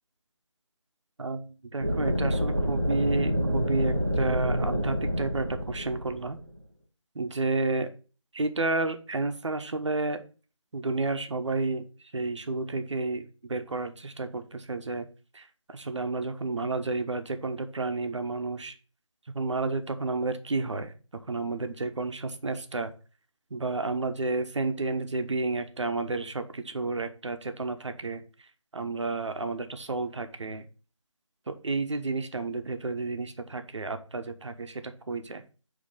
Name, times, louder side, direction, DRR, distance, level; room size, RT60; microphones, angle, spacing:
voice 1, 1.2-6.4 7.1-7.9 8.3-10.2 10.7-11.8 12.1-15.1 15.3-18.7 19.3-22.9 23.5-28.2 28.7-30.6 31.5-35.4, right 3 dB, 65° right, 8 dB, 0.8 m, -31 dB
sound 1, 1.8-6.6, equal, 20° right, 0.5 m, -28 dB
6.5 x 2.9 x 5.4 m, 0.36 s
figure-of-eight pair, 175°, 16 cm